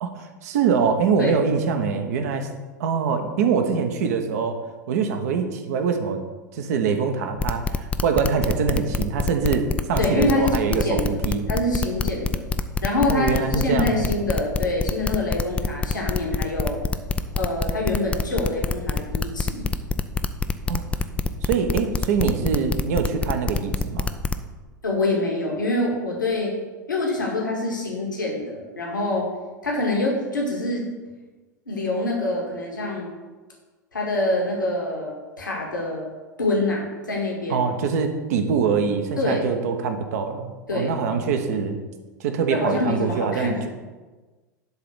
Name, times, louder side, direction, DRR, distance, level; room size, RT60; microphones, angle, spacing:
voice 1, 0.0-2.5 2.8-4.6 4.9-6.2 6.5-11.5 13.1-13.9 20.7-20.9 21.4-24.1 37.5-41.8 42.2-43.7, right 6 dB, 55° right, 6 dB, 1.1 m, -24 dB
sound 1, 7.4-24.4, left 4 dB, 10° left, 0.5 m, -25 dB
voice 2, 10.0-11.1 11.5-12.4 12.8-16.8 17.3-19.6 24.8-26.5 26.9-29.3 29.6-30.8 31.7-33.1 33.9-36.1 36.4-37.7 39.2-39.5 40.7-40.9 42.5-43.7, left 2 dB, 75° left, -1 dB, 1.9 m, -25 dB
11.5 x 4.0 x 6.9 m, 1.3 s
figure-of-eight pair, 85°, 10 cm